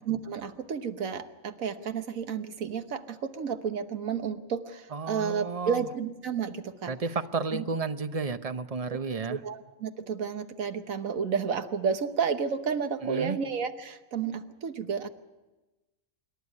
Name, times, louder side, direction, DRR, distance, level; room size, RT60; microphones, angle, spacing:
voice 1, 0.1-6.9 7.5-7.6 8.9-15.1, right 6 dB, 85° right, 9 dB, 1.5 m, -31 dB
voice 2, 4.9-5.8 6.9-9.4 13.0-13.4, right 4 dB, 35° right, 11 dB, 0.6 m, -32 dB
27.0 x 11.5 x 9.6 m, 1.1 s
omnidirectional pair, 1.4 m